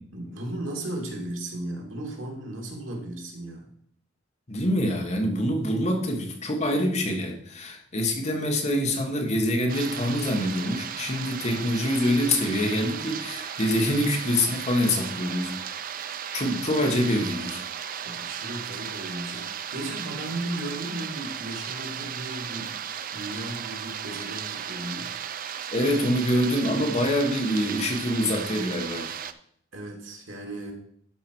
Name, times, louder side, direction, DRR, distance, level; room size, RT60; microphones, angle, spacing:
voice 1, 0.1-3.7 18.0-22.9 23.1-25.2 29.7-30.7, right 1 dB, 85° right, 1 dB, 2.3 m, -35 dB
voice 2, 4.5-15.8 16.3-17.6 25.7-29.1, left 1 dB, 35° left, 3 dB, 1.5 m, -25 dB
sound 1, 9.7-29.3, right 8 dB, 45° right, 0.5 m, -35 dB
11.5 x 5.0 x 4.6 m, 0.67 s
head